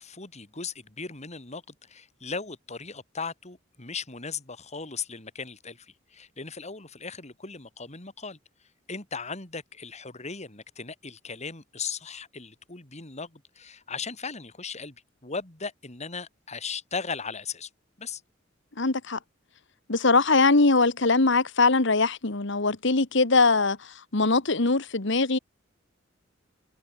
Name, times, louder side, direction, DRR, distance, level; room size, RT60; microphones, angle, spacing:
voice 1, 0.0-8.4 8.9-15.0 15.2-17.7 18.0-18.2, left 5 dB, 35° left, 3.3 m, -37 dB
voice 2, 18.8-19.2 19.9-23.8 24.1-25.4, left 3 dB, 70° left, 1.6 m, -21 dB
head